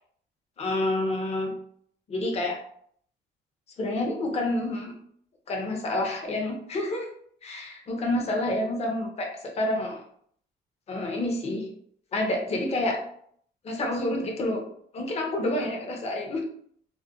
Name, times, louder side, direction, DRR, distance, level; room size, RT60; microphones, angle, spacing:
voice 1, 0.6-1.6 2.1-2.6 3.8-5.0 5.5-7.1 7.4-10.0 10.9-11.7 12.1-13.0 13.6-14.6 14.9-16.5, left 1 dB, 35° left, 1 dB, 0.5 m, -28 dB
2.3 x 2.1 x 2.6 m, 0.64 s
cardioid pair, 145°, 19 cm